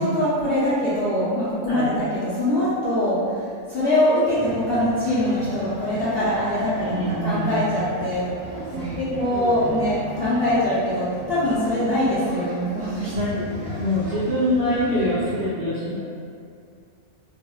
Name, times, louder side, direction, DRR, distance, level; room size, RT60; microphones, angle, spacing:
voice 1, 0.0-8.3 9.0-13.1, left 1 dB, 60° left, -11 dB, 0.6 m, -23 dB
sound 1, 4.3-15.4, right 1 dB, 15° left, 0.3 m, -37 dB
voice 2, 6.8-7.6 8.7-8.9 13.1-16.0, equal, 55° right, -12 dB, 0.6 m, -25 dB
3.4 x 2.1 x 2.2 m, 2.3 s
omnidirectional pair, 1.5 m